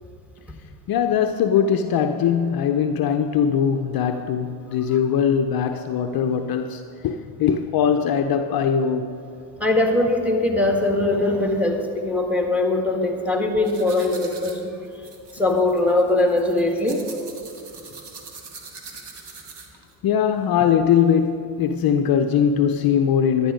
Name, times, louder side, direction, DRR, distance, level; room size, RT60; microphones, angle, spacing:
voice 1, 0.9-9.1 20.0-23.5, left 8 dB, 50° left, 7 dB, 0.7 m, -21 dB
voice 2, 9.6-14.6 15.3-17.0, left 2 dB, 5° right, 2 dB, 1.8 m, -21 dB
sound 1, 13.6-19.9, right 4 dB, 55° right, 1.9 m, -42 dB
12.0 x 9.8 x 5.1 m, 2.5 s
supercardioid pair, 85°, 48 cm